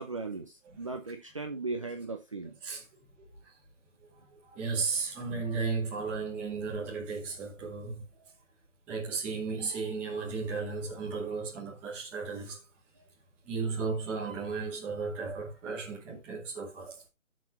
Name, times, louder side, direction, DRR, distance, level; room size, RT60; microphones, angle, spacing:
voice 1, 0.0-2.6, right 3 dB, 25° right, 0.7 m, -37 dB
voice 2, 4.3-8.3 8.9-12.6 13.4-17.1, right 4 dB, 5° right, 1.0 m, -35 dB
14.0 x 6.1 x 3.0 m
hypercardioid pair, 170°, 39 cm